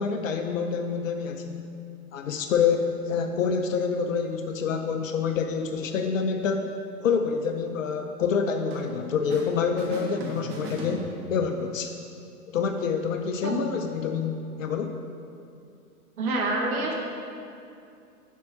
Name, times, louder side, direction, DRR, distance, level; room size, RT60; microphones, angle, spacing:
voice 1, 0.0-1.7 2.1-6.8 7.0-11.9 12.5-15.0, left 6 dB, 60° left, 5 dB, 0.6 m, -27 dB
sound 1, 8.7-9.5 9.8-11.5, right 1 dB, 30° right, 1.2 m, -38 dB
voice 2, 16.2-16.9, right 2 dB, 65° right, -1 dB, 1.4 m, -27 dB
7.4 x 4.6 x 5.6 m, 2.5 s
figure-of-eight pair, 115°, 46 cm